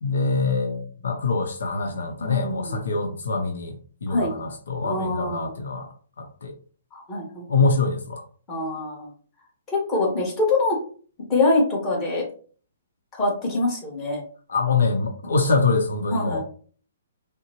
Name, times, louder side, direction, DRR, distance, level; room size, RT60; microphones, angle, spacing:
voice 1, 0.0-5.9 6.2-6.6 7.5-8.2 14.5-16.4, left 4 dB, 80° left, 4 dB, 0.8 m, -24 dB
voice 2, 2.2-2.8 4.1-4.3 4.8-5.5 6.9-7.5 8.5-9.1 9.7-10.8 11.3-12.2 13.2-14.2 16.1-16.4, left 2 dB, 20° left, -4 dB, 1.7 m, -24 dB
5.5 x 2.2 x 3.0 m, 0.44 s
hypercardioid pair, 150°, 0 cm